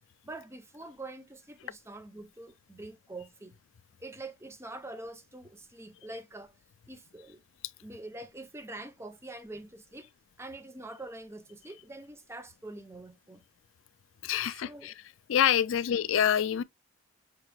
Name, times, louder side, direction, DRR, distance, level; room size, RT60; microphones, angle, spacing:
voice 1, 0.2-3.6 4.0-6.6 6.9-7.4 7.8-10.1 10.4-13.4 14.5-14.9 15.7-15.8, right 2 dB, 10° right, 0.4 m, -45 dB
voice 2, 14.2-14.9 15.3-16.6, left 9 dB, 65° left, 0.3 m, -26 dB
6.0 x 2.3 x 3.1 m
head